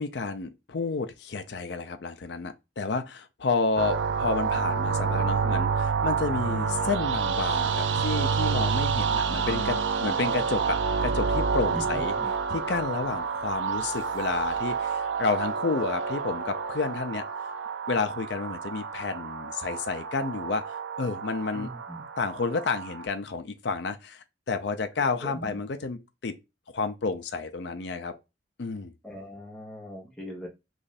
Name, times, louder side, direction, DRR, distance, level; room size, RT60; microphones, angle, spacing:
voice 1, 0.0-12.1 12.5-17.2 17.9-21.7 22.2-26.4 26.7-28.1 28.6-28.9, left 4 dB, 60° left, 0.5 m, -30 dB
sound 1, 3.8-23.0, right 5 dB, 70° right, 0.4 m, -29 dB
voice 2, 11.7-12.3 21.5-22.0 25.2-25.6 29.0-30.5, equal, 5° left, 1.0 m, -40 dB
3.1 x 2.6 x 4.0 m
head